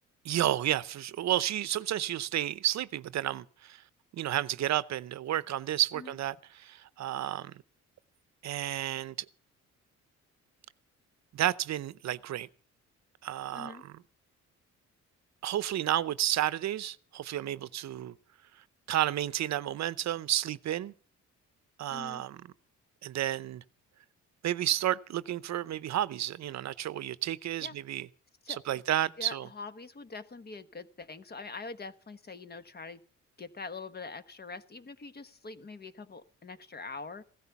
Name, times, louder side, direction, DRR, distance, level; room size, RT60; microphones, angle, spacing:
voice 1, 0.2-3.8 4.1-7.5 8.4-9.1 11.3-12.5 13.2-13.9 15.4-18.1 18.9-20.9 21.8-22.4 23.0-23.6 24.4-28.1 28.7-29.5, right 12 dB, 65° right, 0.7 m, -31 dB
voice 2, 13.5-13.8 21.9-22.2 27.6-27.7 28.4-28.8 29.2-33.0 33.4-37.2, left 4 dB, 30° left, 1.2 m, -44 dB
16.0 x 13.5 x 5.9 m
cardioid pair, 90°, 30 cm